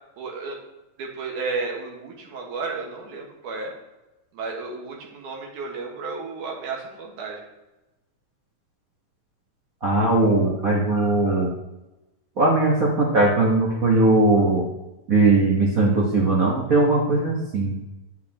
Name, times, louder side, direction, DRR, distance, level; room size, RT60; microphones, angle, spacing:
voice 1, 0.2-0.6 1.0-3.7 4.3-7.4, right 4 dB, 85° right, 0 dB, 3.0 m, -32 dB
voice 2, 9.8-11.5 12.4-14.7 15.1-17.8, right 2 dB, 65° right, -3 dB, 0.8 m, -19 dB
8.7 x 8.1 x 2.9 m, 1.0 s
omnidirectional pair, 3.4 m